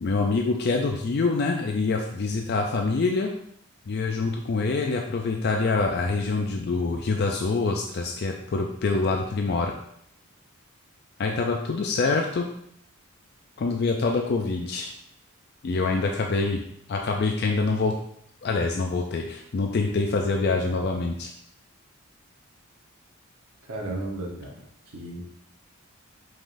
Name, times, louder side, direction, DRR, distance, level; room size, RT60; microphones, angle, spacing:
voice 1, 0.0-3.3 3.9-9.7 11.2-12.5 13.6-14.9 15.6-16.6 16.9-17.9 18.4-21.3, left 3 dB, 50° left, 2 dB, 0.4 m, -25 dB
voice 2, 23.7-24.5 24.9-25.2, right 2 dB, 75° right, -2 dB, 1.1 m, -33 dB
5.1 x 3.7 x 2.6 m, 0.69 s
head